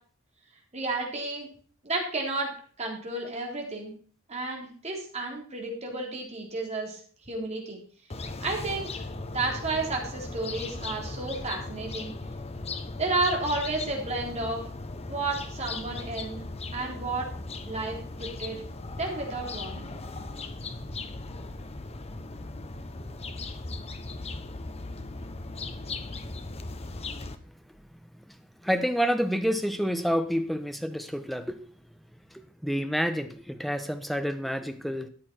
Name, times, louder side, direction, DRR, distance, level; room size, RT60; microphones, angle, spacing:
voice 1, 0.7-1.5 1.8-2.5 2.8-3.9 4.3-7.0 7.3-7.8 8.4-8.9 9.3-12.1 13.0-14.6 15.1-16.4 16.7-17.3 17.7-18.6 19.0-19.9, right 2 dB, 30° right, 3.5 m, -31 dB
sound 1, 8.1-27.4, left 3 dB, 30° left, 0.9 m, -38 dB
voice 2, 28.6-31.6 32.3-35.1, equal, ahead, 1.0 m, -29 dB
13.5 x 8.7 x 4.4 m
head